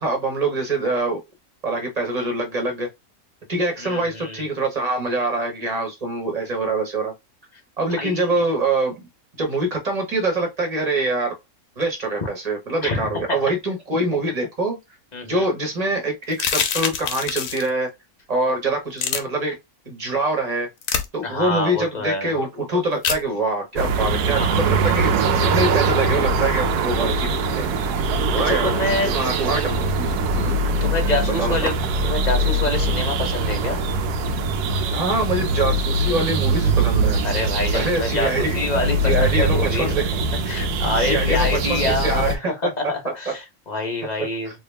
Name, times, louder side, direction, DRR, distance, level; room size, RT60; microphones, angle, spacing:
voice 1, 0.0-1.2 1.6-2.9 3.5-7.1 7.8-9.0 9.4-11.3 11.8-14.8 15.2-17.9 18.3-19.6 19.9-20.7 21.1-27.3 27.6-27.7 28.3-30.6 31.4-31.7 34.9-37.2 37.7-38.6 39.0-40.1 41.0-43.3, right 2 dB, 30° right, 1.2 m, -24 dB
voice 2, 3.8-4.4 7.9-8.3 12.8-13.4 15.1-15.5 21.2-22.4 24.3-24.7 28.4-29.1 30.4-31.8 32.0-33.8 37.2-39.9 40.5-44.5, left 2 dB, 30° left, 1.0 m, -26 dB
sound 1, 16.3-17.7 19.0-19.2 20.8-21.1 23.0-23.2, left 7 dB, 80° left, 1.2 m, -24 dB
sound 2, 23.8-42.4, right 2 dB, 85° right, 1.2 m, -22 dB
3.0 x 2.7 x 3.3 m
omnidirectional pair, 1.6 m